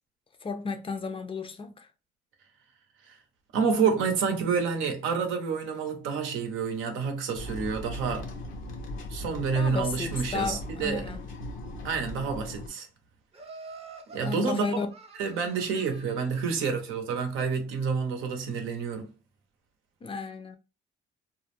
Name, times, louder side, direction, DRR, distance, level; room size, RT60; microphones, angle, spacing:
voice 1, 0.4-1.9 9.5-11.2 14.2-14.9 20.0-20.6, left 4 dB, 25° left, 0.4 m, -33 dB
voice 2, 3.5-8.3 9.1-11.1 11.8-12.9 14.1-14.6 15.2-19.1, right 5 dB, 90° right, 0.7 m, -28 dB
sound 1, 7.3-12.7, left 1 dB, 85° left, 0.6 m, -38 dB
Laughter, 13.3-16.6, right 3 dB, 30° right, 0.6 m, -47 dB
2.3 x 2.0 x 3.0 m
cardioid pair, 90°, 20 cm